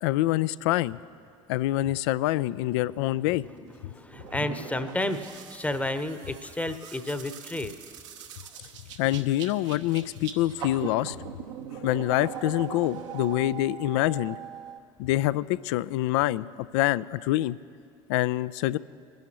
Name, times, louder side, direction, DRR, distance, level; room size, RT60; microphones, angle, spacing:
voice 1, 0.0-1.0 1.5-3.4 9.0-11.2 11.8-14.4 15.0-16.4 16.7-17.6 18.1-18.8, left 16 dB, 55° left, 18 dB, 0.4 m, -26 dB
sound 1, 3.3-14.8, right 8 dB, 65° right, 1.0 m, -41 dB
voice 2, 3.6-7.7, left 1 dB, 10° left, 10 dB, 0.9 m, -31 dB
22.5 x 10.5 x 3.0 m, 2.3 s
figure-of-eight pair, 60°, 17 cm